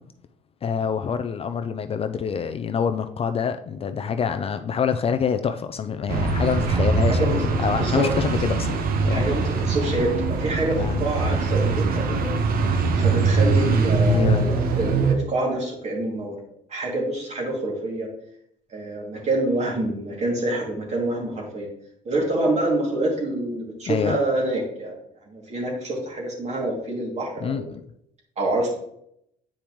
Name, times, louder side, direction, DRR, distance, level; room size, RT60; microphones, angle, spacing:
voice 1, 0.6-9.3 10.8-11.0 14.1-14.5 23.9-24.2 27.4-27.8, left 7 dB, 35° left, 8 dB, 0.4 m, -26 dB
sound 1, 6.1-15.2, right 4 dB, 60° right, 0.9 m, -22 dB
voice 2, 9.1-12.3 12.6-16.4 16.7-18.1 18.7-21.7 22.0-25.0 25.3-27.7 28.4-28.8, right 2 dB, 40° right, -2 dB, 2.5 m, -26 dB
8.7 x 5.0 x 3.1 m, 0.72 s
cardioid pair, 110°, 17 cm